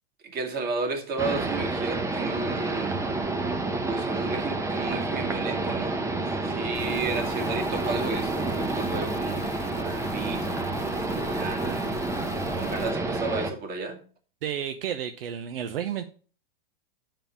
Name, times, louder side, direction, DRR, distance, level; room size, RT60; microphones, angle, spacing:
voice 1, 0.2-3.2 3.9-12.0 12.5-14.0, right 4 dB, 30° right, 2.4 m, -33 dB
sound 1, 1.2-13.5, right 2 dB, 10° right, 0.9 m, -29 dB
sound 2, 6.7-12.9, left 6 dB, 25° left, 1.2 m, -41 dB
voice 2, 14.4-16.1, right 9 dB, 70° right, 0.9 m, -31 dB
7.2 x 5.6 x 7.0 m
hypercardioid pair, 120°, 29 cm